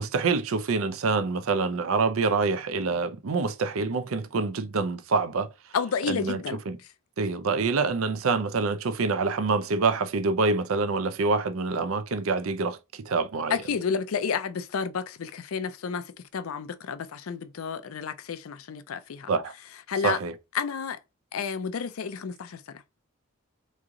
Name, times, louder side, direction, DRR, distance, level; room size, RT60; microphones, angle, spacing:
voice 1, 0.0-5.5 6.1-6.4 6.7-6.8 7.2-13.6 19.3-19.5 20.0-20.3, right 4 dB, 75° right, 0.5 m, -26 dB
voice 2, 5.7-6.6 13.5-19.3 19.9-20.2 20.5-21.0 21.3-22.8, left 6 dB, 75° left, 0.4 m, -31 dB
3.7 x 3.1 x 3.7 m
head